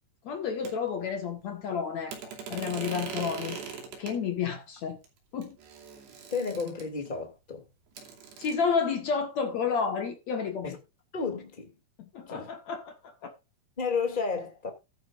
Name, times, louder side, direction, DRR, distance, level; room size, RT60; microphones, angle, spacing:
voice 1, 0.2-3.6 4.0-5.0 5.3-5.6 8.4-10.8 12.1-13.3, left 6 dB, 60° left, 1.9 m, -31 dB
sound 1, 0.7-0.8 2.1-4.2 5.0-5.1 5.4-7.1 8.0-8.5, right 6 dB, 70° right, 4.8 m, -40 dB
voice 2, 6.3-7.6 10.6-10.8 11.1-11.7 12.3-12.5 13.8-14.7, left 5 dB, 15° left, 1.6 m, -32 dB
14.5 x 11.0 x 2.5 m
omnidirectional pair, 5.1 m